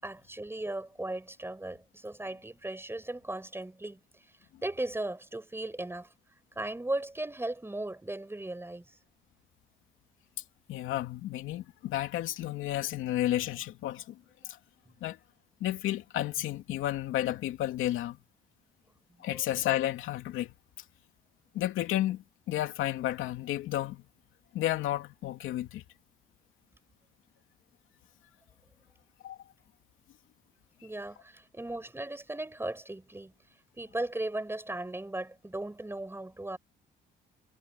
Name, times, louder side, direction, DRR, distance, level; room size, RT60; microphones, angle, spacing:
voice 1, 0.0-4.0 4.6-6.1 6.5-9.0 19.2-19.5 30.8-33.3 33.8-36.6, right 2 dB, 10° right, 6.3 m, -37 dB
voice 2, 10.7-14.2 14.4-14.6 15.0-15.2 15.6-18.2 19.2-20.5 21.5-24.0 24.5-25.8 29.2-29.4, left 13 dB, 90° left, 2.8 m, -32 dB
cardioid pair, 90°, 20 cm